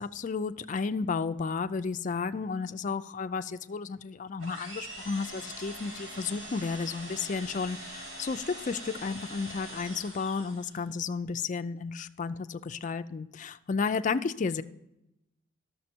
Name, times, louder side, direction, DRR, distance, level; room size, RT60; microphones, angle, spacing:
voice 1, 0.0-14.6, left 5 dB, 40° left, 10 dB, 0.4 m, -32 dB
sound 1, 4.4-10.9, right 1 dB, 90° right, 4.4 m, -43 dB
11.5 x 6.8 x 4.4 m, 0.89 s
head